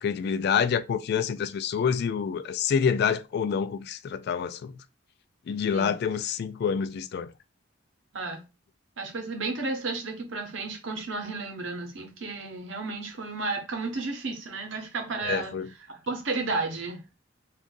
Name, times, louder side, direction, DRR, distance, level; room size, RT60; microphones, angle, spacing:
voice 1, 0.0-4.7 5.5-7.3 15.2-15.7, left 7 dB, 55° left, 0.3 m, -27 dB
voice 2, 9.0-15.5 15.9-17.0, right 3 dB, 70° right, 0.9 m, -32 dB
2.6 x 2.4 x 3.8 m
head